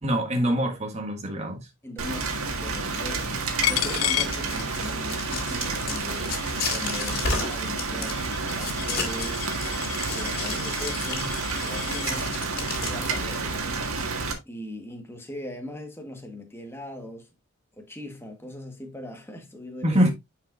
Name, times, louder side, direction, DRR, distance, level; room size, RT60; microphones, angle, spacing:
voice 1, 0.0-1.7 19.8-20.1, equal, 30° right, 1.6 m, -24 dB
voice 2, 1.8-3.2 3.6-6.4 6.7-9.7 10.1-12.4 12.8-13.7 14.4-17.3 17.8-20.0, left 1 dB, 10° left, 1.3 m, -40 dB
Rain, 2.0-14.3, right 4 dB, 75° right, 1.6 m, -30 dB
Coin (dropping), 3.6-5.1 5.5-12.1, left 15 dB, 80° left, 0.3 m, -33 dB
sound 1, 4.1-13.4, left 4 dB, 45° left, 2.2 m, -33 dB
9.8 x 5.0 x 2.5 m
head